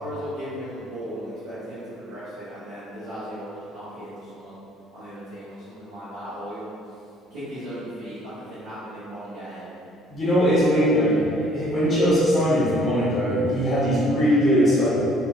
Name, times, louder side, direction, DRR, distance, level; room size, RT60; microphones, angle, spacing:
voice 1, 0.0-4.5 4.9-6.9 7.3-9.7, equal, 70° right, -15 dB, 0.8 m, -36 dB
voice 2, 10.1-15.0, equal, 40° left, -10 dB, 1.1 m, -20 dB
3.0 x 2.6 x 2.3 m, 2.7 s
figure-of-eight pair, 55°, 0 cm